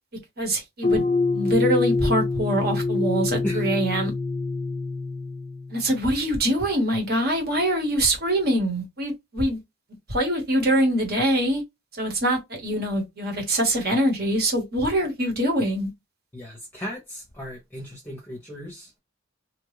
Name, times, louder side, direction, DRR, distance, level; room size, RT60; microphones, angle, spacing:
voice 1, 0.4-1.0 1.3-4.1 5.7-9.6 10.1-11.6 12.0-15.9, right 1 dB, 50° right, 1.3 m, -24 dB
sound 1, 0.8-6.0, left 3 dB, 25° left, 0.4 m, -25 dB
voice 2, 16.3-18.9, equal, 10° left, 0.7 m, -35 dB
2.9 x 2.4 x 3.2 m
head